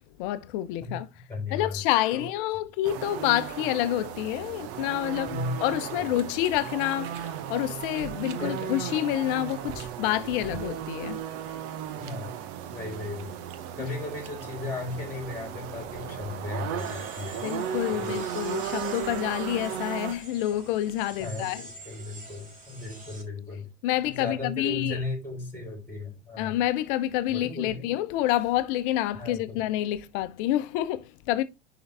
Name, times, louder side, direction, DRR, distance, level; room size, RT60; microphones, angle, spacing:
voice 1, 0.2-1.1 1.5-5.4 5.6-11.2 17.4-21.6 23.8-25.0 26.4-31.4, left 14 dB, 50° left, 1.0 m, -28 dB
voice 2, 1.3-1.8 2.1-2.3 5.3-6.1 8.4-8.9 12.0-12.3 12.7-13.4 13.8-17.5 17.9-18.3 21.2-23.7 24.1-26.6 27.3-27.9 29.1-29.6, left 3 dB, 5° left, 4.1 m, -36 dB
sound 1, 2.8-20.1, right 9 dB, 45° right, 1.1 m, -35 dB
sound 2, 16.8-23.2, right 2 dB, 25° right, 3.2 m, -46 dB
10.5 x 4.0 x 3.5 m
figure-of-eight pair, 80°, 34 cm